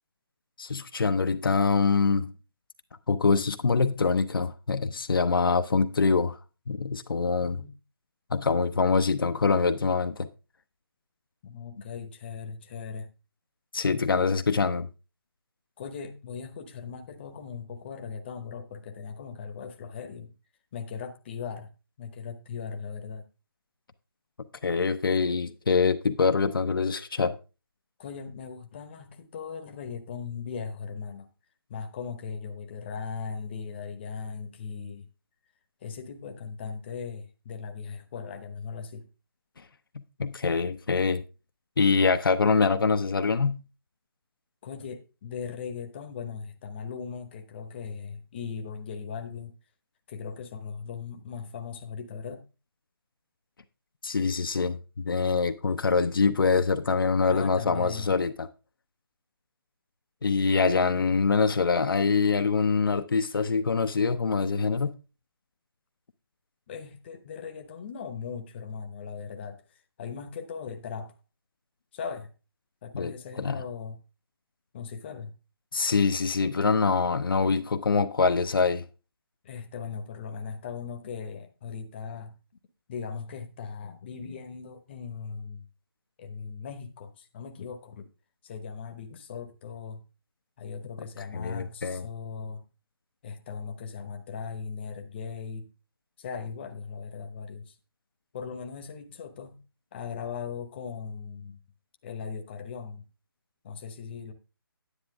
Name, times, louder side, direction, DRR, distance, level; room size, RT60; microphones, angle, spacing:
voice 1, 0.6-2.3 3.1-6.4 6.7-7.6 8.3-10.3 13.7-14.9 24.6-27.4 39.9-41.2 41.8-43.6 54.0-54.8 55.0-58.5 60.2-65.0 72.9-73.1 73.4-73.6 75.7-78.8 91.3-92.0, left 4 dB, 65° left, 0.7 m, -24 dB
voice 2, 7.4-7.7 11.4-13.1 13.9-14.2 15.8-20.3 20.7-21.7 22.0-23.2 28.0-31.3 31.7-35.1 35.8-39.1 44.6-49.5 50.1-52.4 57.3-58.2 66.7-69.6 70.0-71.1 71.9-72.3 72.8-74.0 74.7-75.3 79.4-82.4 82.9-85.7 86.2-88.1 88.4-90.0 90.6-92.6 93.2-95.7 96.2-97.7 98.3-99.6 99.9-101.6 102.0-103.0 103.6-104.3, left 6 dB, 25° left, 1.0 m, -38 dB
9.9 x 8.6 x 3.5 m
figure-of-eight pair, 155°, 13 cm